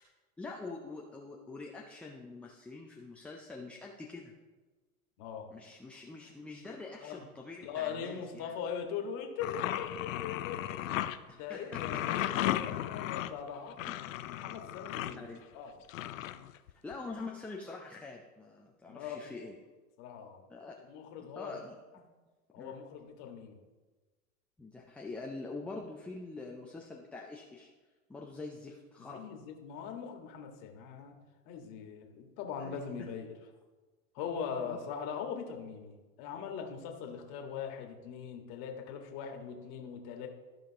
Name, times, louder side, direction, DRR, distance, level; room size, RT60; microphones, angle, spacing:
voice 1, 0.4-4.3 5.5-8.5 11.5-12.2 13.9-14.0 15.2-15.4 16.8-19.6 20.5-20.7 21.4-21.8 22.6-22.8 24.6-27.7 28.1-29.2 32.6-33.1 34.6-34.8, left 3 dB, 5° left, -1 dB, 0.3 m, -45 dB
voice 2, 5.2-5.6 7.0-7.3 7.6-10.8 11.3-13.9 14.3-15.7 18.9-19.3 20.0-20.4 20.8-21.6 22.5-23.6 29.0-31.1 31.4-33.4 34.1-40.3, left 7 dB, 45° left, 3 dB, 1.7 m, -41 dB
sound 1, 9.4-11.2 11.7-15.1 15.9-16.9, left 13 dB, 65° left, 0.6 m, -35 dB
14.0 x 5.1 x 2.9 m, 1.3 s
hypercardioid pair, 100°, 42 cm